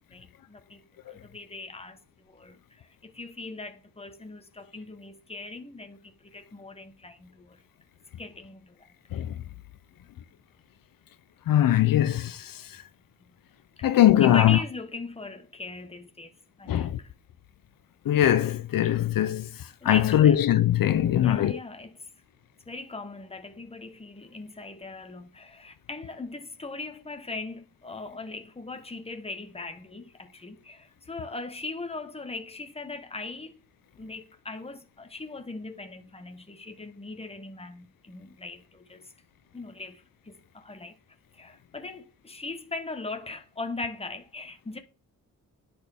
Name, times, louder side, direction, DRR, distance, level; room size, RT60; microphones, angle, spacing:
voice 1, 0.1-7.6 8.2-8.9 13.2-13.3 13.8-16.3 16.6-17.1 19.8-20.4 21.1-22.1 22.7-33.6 33.9-39.1 39.5-41.0 41.3-44.8, left 3 dB, 15° left, 1.1 m, -40 dB
voice 2, 11.5-12.6 13.8-14.6 16.7-17.0 18.1-19.5 19.8-21.5, left 12 dB, 75° left, 0.6 m, -21 dB
10.5 x 4.4 x 3.5 m
cardioid pair, 70°, 34 cm